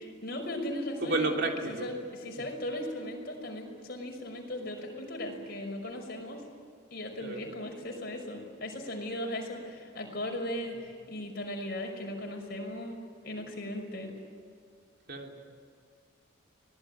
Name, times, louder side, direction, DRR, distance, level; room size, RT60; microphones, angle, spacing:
voice 1, 0.2-1.4 1.7-6.4 6.9-13.0 13.2-14.1, left 1 dB, 50° left, 2 dB, 5.8 m, -37 dB
voice 2, 1.0-1.9 7.2-7.5 15.1-15.4, right 2 dB, 55° right, 2 dB, 3.3 m, -31 dB
24.5 x 19.5 x 9.4 m, 2.1 s
head